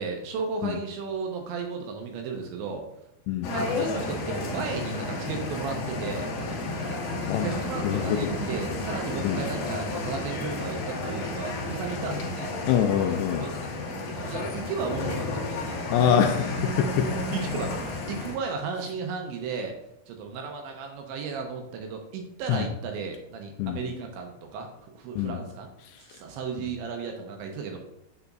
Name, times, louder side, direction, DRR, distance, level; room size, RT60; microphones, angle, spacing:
voice 1, 0.0-2.9 3.5-6.3 6.8-7.0 7.4-12.5 13.4-13.7 14.0-15.4 17.3-19.7 20.1-25.7 26.1-27.8, right 5 dB, 80° right, 3 dB, 2.9 m, -34 dB
sound 1, 3.4-18.3, left 2 dB, 70° left, 2.3 m, -32 dB
voice 2, 7.8-8.3 9.2-9.4 12.7-13.4 15.9-17.2 22.5-22.7 23.6-23.8 25.2-25.4, left 9 dB, 90° left, 4 dB, 2.4 m, -24 dB
7.0 x 6.8 x 2.5 m, 0.81 s
omnidirectional pair, 5.5 m